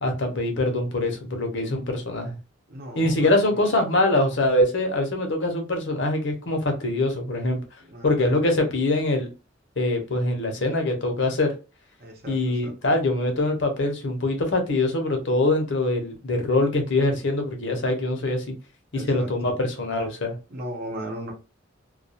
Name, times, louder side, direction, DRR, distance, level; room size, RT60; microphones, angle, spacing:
voice 1, 0.0-2.4 2.9-7.6 8.0-9.3 9.8-11.5 12.3-18.5 18.9-20.4, left 2 dB, 65° left, 0.8 m, -23 dB
voice 2, 2.7-3.7 7.8-8.4 12.0-12.8 18.9-19.5 20.5-21.3, right 1 dB, 50° right, 0.7 m, -37 dB
2.3 x 2.2 x 2.7 m
head